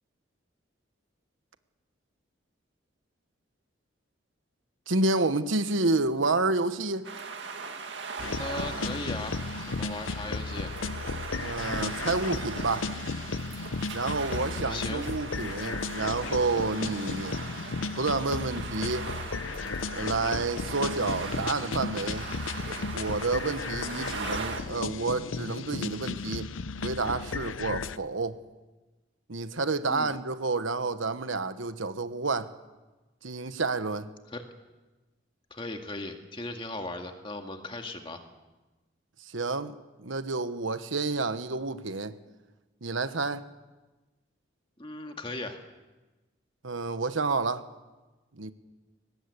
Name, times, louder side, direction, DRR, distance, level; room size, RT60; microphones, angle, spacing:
voice 1, 4.9-7.1 11.4-12.9 13.9-17.4 18.0-19.1 19.9-22.3 22.9-26.5 26.8-28.4 29.3-32.5 33.2-34.1 39.3-39.7 40.0-42.1 42.8-43.4 46.6-47.6 48.4-48.5, right 3 dB, 85° right, 1.2 m, -29 dB
sound 1, 7.0-24.6, right 4 dB, 65° right, 2.3 m, -39 dB
sound 2, 8.2-28.0, left 4 dB, 90° left, 0.7 m, -35 dB
voice 2, 8.4-10.7 14.3-15.1 29.9-30.2 34.3-34.4 35.5-38.2 44.8-45.6, left 2 dB, 25° left, 2.0 m, -38 dB
23.0 x 19.5 x 8.5 m
head